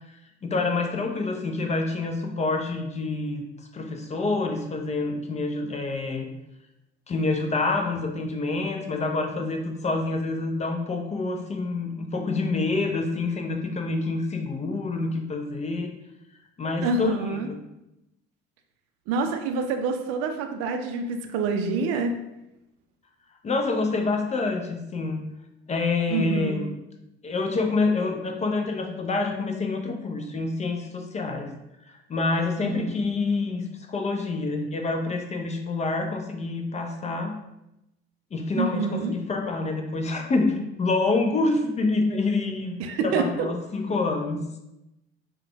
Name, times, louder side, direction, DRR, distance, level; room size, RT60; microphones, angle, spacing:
voice 1, 0.4-3.4 3.7-6.3 7.1-15.9 16.6-17.6 23.4-25.2 25.7-26.7 27.2-31.5 31.9-37.3 38.3-42.8 43.0-44.4, left 3 dB, 20° left, 4 dB, 0.5 m, -27 dB
voice 2, 16.8-17.5 19.1-22.1 26.1-26.6 32.6-32.9 38.6-39.1 42.8-43.5, right 4 dB, 50° right, 6 dB, 0.5 m, -27 dB
4.9 x 2.2 x 3.3 m, 0.90 s
figure-of-eight pair, 55°, 32 cm